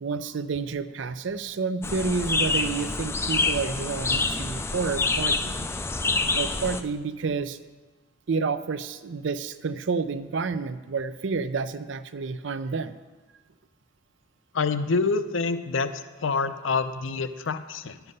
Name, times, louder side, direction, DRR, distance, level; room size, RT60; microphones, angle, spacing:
voice 1, 0.0-5.7 6.3-7.6 8.3-13.0, right 4 dB, 60° right, 13 dB, 0.5 m, -29 dB
sound 1, 1.8-6.8, left 3 dB, 10° left, 0.3 m, -27 dB
voice 2, 14.5-18.0, left 4 dB, 70° left, 11 dB, 0.6 m, -27 dB
11.0 x 8.1 x 5.4 m, 1.3 s
head